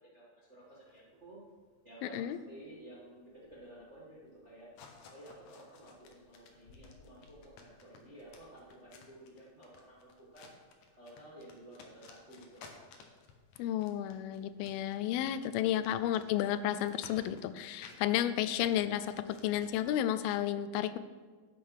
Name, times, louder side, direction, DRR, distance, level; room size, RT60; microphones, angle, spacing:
voice 1, 0.1-1.4 1.8-4.7 5.1-10.5 10.9-12.7 15.4-15.8, right 1 dB, 35° right, -6 dB, 1.2 m, -53 dB
sound 1, 0.6-19.7, left 5 dB, 65° left, 1.9 m, -58 dB
voice 2, 2.0-2.4 13.6-21.0, left 11 dB, 90° left, 13 dB, 2.4 m, -32 dB
11.0 x 8.5 x 4.7 m, 1.5 s
omnidirectional pair, 4.2 m